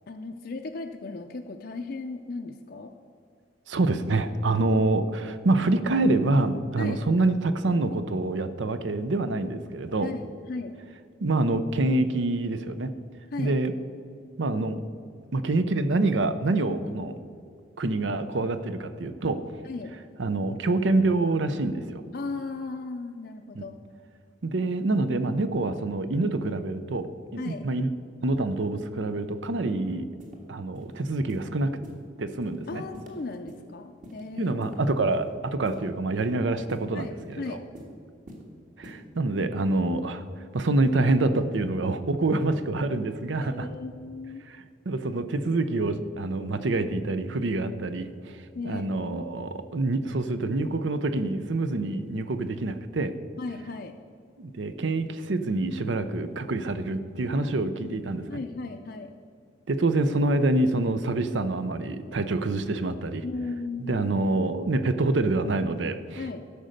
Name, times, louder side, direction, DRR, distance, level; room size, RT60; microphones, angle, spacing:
voice 1, 0.1-2.9 6.8-7.0 10.0-10.7 13.3-13.6 19.6-20.0 22.1-23.8 27.4-27.6 32.7-34.7 36.9-37.6 43.4-44.4 48.5-49.4 53.4-53.9 57.3-57.9 58.3-59.1 63.2-64.1 66.2-66.4, left 3 dB, 55° left, 4 dB, 0.5 m, -36 dB
voice 2, 3.7-10.1 11.2-12.9 13.4-13.7 14.4-14.8 15.3-17.1 17.8-19.4 20.2-22.0 23.5-23.6 24.4-27.9 28.2-30.1 30.5-31.7 32.2-32.8 34.4-37.6 38.8-40.2 40.5-43.7 44.5-44.6 44.9-53.1 54.4-58.4 59.7-63.2 63.9-66.2, right 2 dB, 75° right, 11 dB, 0.6 m, -26 dB
sound 1, 30.2-30.4 30.7-30.9 31.3-31.5 31.8-32.0 32.4-32.6 32.9-33.1 33.5-33.6 34.0-34.2 34.6-35.3 35.6-35.8 36.2-36.3 36.7-36.9 37.2-37.4 37.7-37.9 38.3-38.4 38.8-39.0, equal, 45° right, 1.7 m, -44 dB
13.0 x 5.2 x 6.5 m, 2.3 s
head